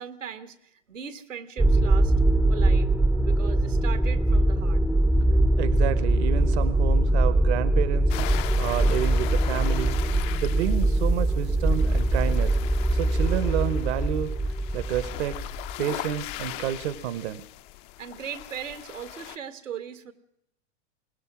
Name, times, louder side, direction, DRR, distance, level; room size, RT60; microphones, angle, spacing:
voice 1, 0.0-2.1 2.5-2.9 3.3-4.8 18.0-20.1, right 8 dB, 85° right, 11 dB, 1.8 m, -38 dB
sound 1, 1.6-15.8, right 1 dB, 5° right, 0.7 m, -22 dB
voice 2, 5.6-8.1 8.5-10.0 10.4-12.6 12.9-14.3 14.7-15.4 15.8-17.4, right 11 dB, 60° right, 15 dB, 1.2 m, -29 dB
sound 2, 8.1-19.4, left 16 dB, 45° left, 0.8 m, -39 dB
23.0 x 19.5 x 6.2 m, 0.79 s
hypercardioid pair, 105°, 37 cm